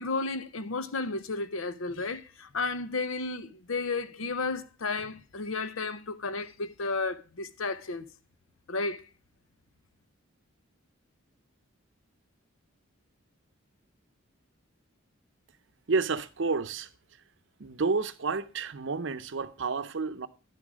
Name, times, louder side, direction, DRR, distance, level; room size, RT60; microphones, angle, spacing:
voice 1, 0.0-8.0 8.7-9.1, left 3 dB, 80° left, 0.8 m, -33 dB
voice 2, 15.9-16.9 17.6-20.3, right 4 dB, 60° right, 0.6 m, -30 dB
9.8 x 7.3 x 4.9 m
head